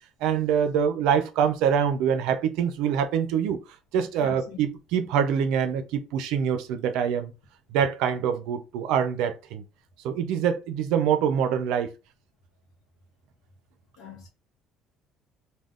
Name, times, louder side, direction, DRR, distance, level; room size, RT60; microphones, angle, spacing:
voice 1, 0.2-3.6 3.9-7.3 7.7-9.6 10.0-11.9, right 8 dB, 80° right, 0.5 m, -25 dB
voice 2, 4.2-4.6 14.0-14.3, left 6 dB, 85° left, 0.8 m, -42 dB
2.4 x 2.2 x 3.5 m
cardioid pair, 125°, 0 cm